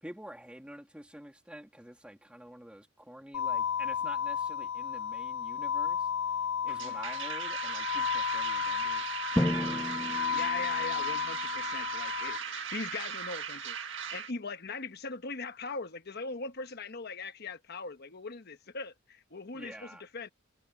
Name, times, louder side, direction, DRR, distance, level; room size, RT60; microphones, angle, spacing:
voice 1, 0.0-6.1 6.6-10.2 19.5-20.0, equal, 5° right, 2.7 m, -48 dB
sound 1, 3.3-12.4, left 8 dB, 75° left, 0.3 m, -33 dB
sound 2, 6.7-14.3, right 7 dB, 65° right, 1.7 m, -38 dB
Drum, 9.4-11.3, left 1 dB, 15° left, 1.0 m, -32 dB
voice 2, 10.3-20.3, left 4 dB, 50° left, 1.2 m, -40 dB
head